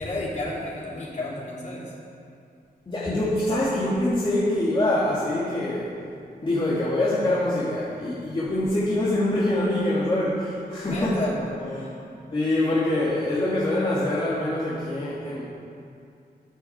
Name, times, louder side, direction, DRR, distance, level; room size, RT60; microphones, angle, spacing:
voice 1, 0.0-1.9 10.8-11.9 12.6-13.0, left 2 dB, 45° left, -6 dB, 4.1 m, -32 dB
voice 2, 2.9-5.9 6.4-11.1 12.3-15.4, left 1 dB, 30° left, -9 dB, 2.9 m, -24 dB
13.0 x 11.5 x 7.4 m, 2.5 s
wide cardioid pair, 150°, 17 cm